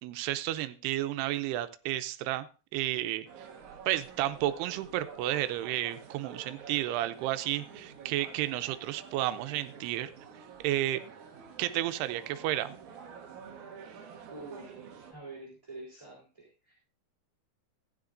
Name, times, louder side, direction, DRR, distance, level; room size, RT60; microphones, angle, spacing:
voice 1, 0.0-2.5 2.7-3.3 3.9-10.1 10.6-11.0 11.6-12.7, right 14 dB, 85° right, 11 dB, 2.7 m, -32 dB
sound 1, 3.3-15.1, right 6 dB, 65° right, 2.0 m, -49 dB
voice 2, 14.3-16.7, right 2 dB, 10° right, -7 dB, 3.0 m, -47 dB
16.0 x 10.0 x 2.6 m, 0.35 s
omnidirectional pair, 4.6 m